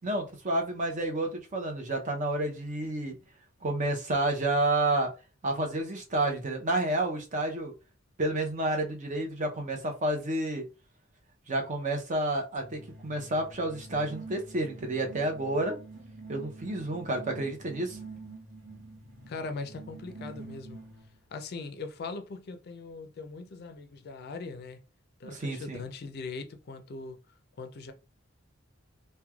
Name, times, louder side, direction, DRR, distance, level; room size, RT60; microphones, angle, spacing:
voice 1, 0.0-3.1 3.6-5.1 5.4-7.7 8.2-10.6 11.5-15.8 16.3-18.0 25.2-25.8, right 2 dB, 40° right, 0.6 m, -30 dB
sound 1, 12.6-21.2, right 3 dB, 80° right, 0.9 m, -47 dB
voice 2, 19.3-20.8 21.3-24.8 25.2-27.2 27.6-27.9, left 4 dB, 50° left, 0.4 m, -40 dB
3.1 x 2.1 x 2.3 m
head